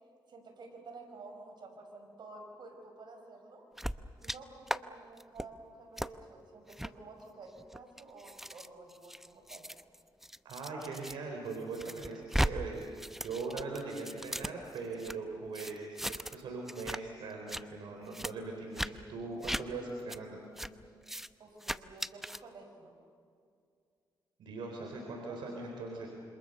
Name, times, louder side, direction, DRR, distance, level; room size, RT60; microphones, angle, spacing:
voice 1, 0.3-3.7 4.2-9.7 21.4-23.0 24.8-24.9 25.3-25.6, right 3 dB, 65° right, 4 dB, 5.9 m, -51 dB
sound 1, 3.8-4.4 4.7-4.8 5.2-5.5 6.0-6.1 6.7-6.9 7.6-11.2 11.5-12.5 12.8-15.2 15.5-16.4 16.7-17.0 17.3-17.6 18.1-18.3 18.7-18.9 19.4-19.6 20.1-20.2 20.6-20.7 21.0-21.3 21.6-22.4, equal, 5° right, 0.8 m, -37 dB
voice 2, 10.4-20.4 24.4-26.1, right 3 dB, 90° right, 1 dB, 4.2 m, -40 dB
28.0 x 26.5 x 6.8 m, 2.3 s
cardioid pair, 75°, 8 cm